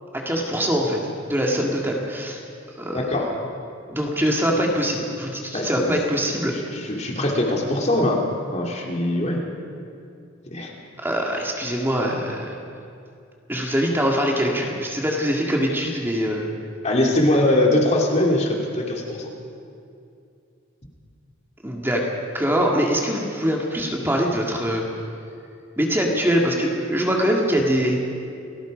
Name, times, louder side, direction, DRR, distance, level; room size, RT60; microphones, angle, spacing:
voice 1, 0.1-2.4 2.8-3.0 3.9-6.6 11.0-12.6 13.5-16.5 21.6-22.1 22.3-24.8 25.8-28.0, equal, 10° right, -1 dB, 2.0 m, -23 dB
voice 2, 2.9-3.3 5.5-5.9 6.5-8.2 8.5-9.4 10.5-10.7 16.8-19.3, left 1 dB, 35° left, 0 dB, 2.6 m, -22 dB
29.0 x 18.5 x 5.1 m, 2.5 s
head